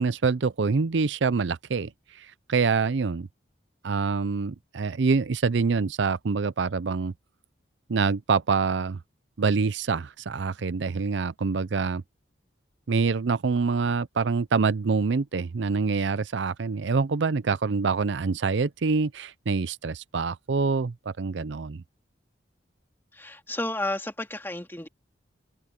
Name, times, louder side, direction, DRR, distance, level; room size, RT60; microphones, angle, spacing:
voice 1, 0.0-3.3 3.8-7.1 7.9-9.0 9.4-12.0 12.9-21.8, right 4 dB, 75° right, 0.5 m, -26 dB
voice 2, 23.1-24.9, left 1 dB, 10° left, 2.3 m, -32 dB
head